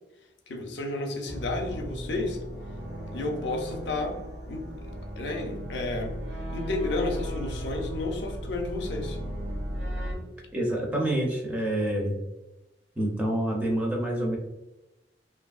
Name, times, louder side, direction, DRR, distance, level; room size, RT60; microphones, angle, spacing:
voice 1, 0.5-2.4 3.1-4.2 4.5-4.6 5.2-6.2 6.5-9.2, left 2 dB, 70° left, 3 dB, 0.5 m, -31 dB
sound 1, 1.3-10.1, equal, 70° right, 0.7 m, -36 dB
voice 2, 10.5-12.2 13.0-14.4, right 1 dB, 10° right, -2 dB, 0.5 m, -27 dB
2.6 x 2.5 x 2.3 m, 1.0 s
head